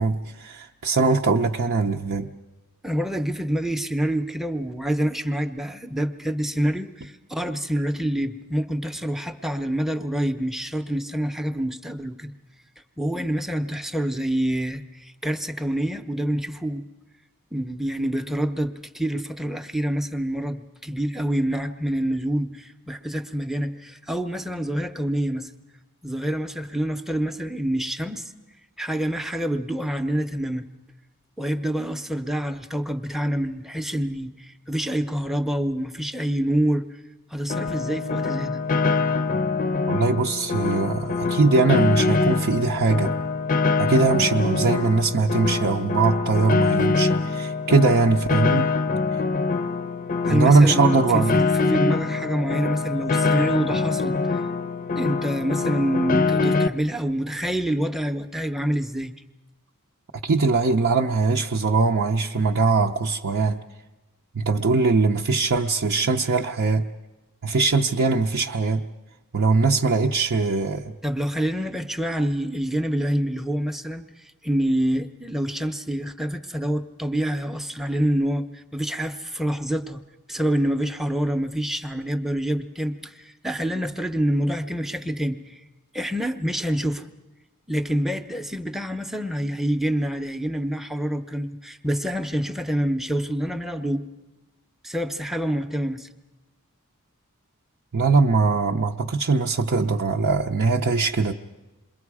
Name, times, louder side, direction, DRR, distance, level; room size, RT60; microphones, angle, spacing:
voice 1, 0.0-2.3 39.9-43.1 43.8-48.7 49.1-49.2 50.3-51.4 60.2-63.6 64.3-66.9 67.4-68.8 69.3-70.9 97.9-101.3, right 4 dB, 60° right, 0 dB, 0.7 m, -21 dB
voice 2, 2.8-12.3 13.0-16.8 17.5-25.5 26.0-28.3 28.8-30.7 31.4-36.9 37.3-38.6 50.2-54.4 55.0-59.1 71.0-74.1 74.4-80.0 80.3-85.6 85.9-87.1 87.7-94.1 94.8-96.1, equal, ahead, 6 dB, 0.7 m, -26 dB
Piano, 37.5-56.7, left 4 dB, 40° left, 0.6 m, -24 dB
27.5 x 22.0 x 4.8 m, 1.1 s
head